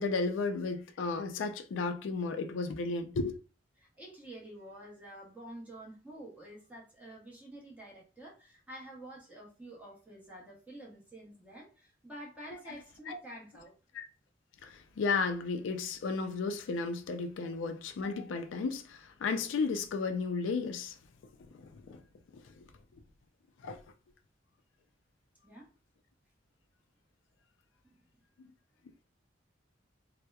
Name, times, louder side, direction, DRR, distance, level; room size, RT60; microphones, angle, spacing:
voice 1, 0.0-3.3 13.1-13.2 13.9-14.1 14.6-21.0 21.5-22.0 22.3-22.6 23.6-23.8 28.4-28.5, left 4 dB, 90° left, 0.4 m, -34 dB
voice 2, 3.8-13.8 17.4-17.7 25.4-25.7 27.8-28.0, right 1 dB, 10° right, 0.8 m, -49 dB
2.7 x 2.0 x 2.2 m
head